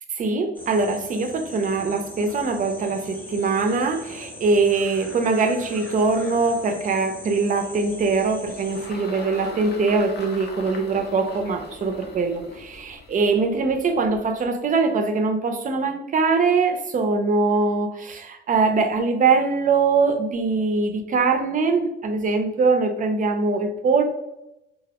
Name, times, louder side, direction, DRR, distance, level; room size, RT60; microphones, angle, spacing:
voice 1, 0.2-24.0, right 4 dB, 40° right, 6 dB, 0.4 m, -22 dB
sound 1, 0.5-8.9, left 1 dB, 10° left, 0.7 m, -40 dB
Engine, 7.8-14.4, left 3 dB, 55° left, 0.6 m, -40 dB
2.3 x 2.1 x 2.8 m, 0.88 s
cardioid pair, 90°, 20 cm